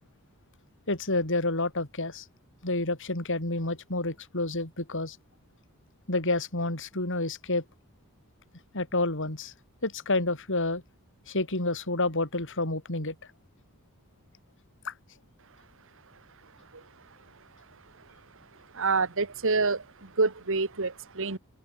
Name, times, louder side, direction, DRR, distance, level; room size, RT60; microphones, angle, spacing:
voice 1, 0.9-2.2 2.6-5.2 6.1-7.6 8.7-9.5 9.8-10.8 11.3-13.1 14.8-14.9, left 2 dB, 60° left, 5.9 m, -29 dB
voice 2, 18.8-19.8 20.2-21.4, right 4 dB, 65° right, 1.8 m, -26 dB
open air
head